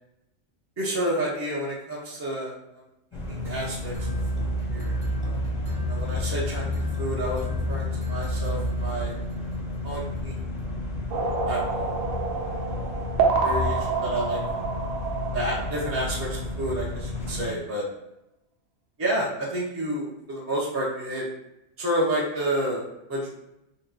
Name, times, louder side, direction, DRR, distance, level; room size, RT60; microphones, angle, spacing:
voice 1, 0.8-2.5 3.3-3.9 4.3-4.9 5.2-5.4 5.9-9.2 9.8-10.3 11.5-11.9 13.4-14.4 15.3-17.9 19.0-21.3 21.8-23.3, right 1 dB, 15° right, -6 dB, 0.6 m, -30 dB
sound 1, 3.1-17.5, left 2 dB, 30° left, 0.5 m, -33 dB
sound 2, 3.9-9.6, equal, 45° right, 0.8 m, -30 dB
sound 3, 11.1-16.5, right 5 dB, 85° right, 1.0 m, -28 dB
3.7 x 2.1 x 4.0 m, 0.87 s
omnidirectional pair, 1.3 m